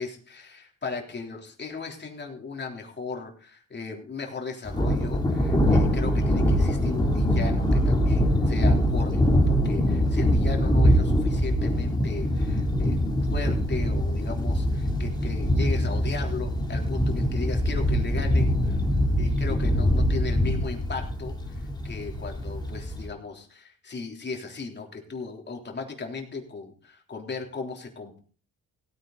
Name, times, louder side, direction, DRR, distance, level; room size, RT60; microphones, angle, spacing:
voice 1, 0.0-18.8 19.2-28.2, left 4 dB, 35° left, 2 dB, 3.4 m, -37 dB
Thunder, 4.7-23.1, equal, 15° left, 3.0 m, -23 dB
17.0 x 9.6 x 4.0 m, 0.40 s
cardioid pair, 90°, 30 cm